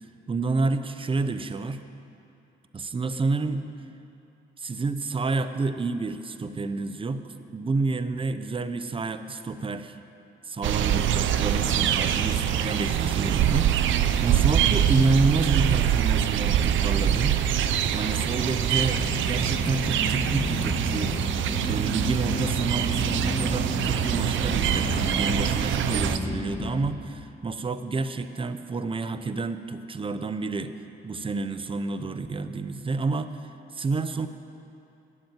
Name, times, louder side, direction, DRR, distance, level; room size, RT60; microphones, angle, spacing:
voice 1, 0.3-1.8 2.7-3.7 4.6-10.0 10.5-17.4 17.9-21.2 21.7-30.7 31.0-34.3, right 3 dB, 25° right, 11 dB, 0.7 m, -29 dB
sound 1, 10.6-26.2, right 10 dB, 75° right, 0.6 m, -24 dB
sound 2, 18.9-26.9, left 2 dB, 35° left, 1.9 m, -32 dB
12.0 x 7.9 x 9.1 m, 2.7 s
cardioid pair, 90°, 20 cm